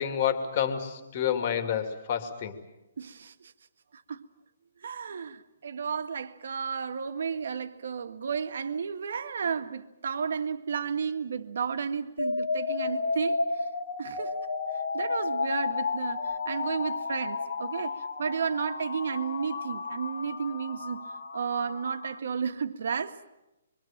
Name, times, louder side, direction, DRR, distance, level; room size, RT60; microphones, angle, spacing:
voice 1, 0.0-2.5, left 8 dB, 30° left, 2.5 m, -29 dB
voice 2, 3.0-3.5 3.9-4.3 4.8-13.7 14.0-14.3 14.7-23.3, right 6 dB, 60° right, 1.9 m, -33 dB
sound 1, 12.2-22.2, left 4 dB, 85° left, 3.1 m, -32 dB
26.5 x 24.0 x 7.4 m
hypercardioid pair, 180°, 0 cm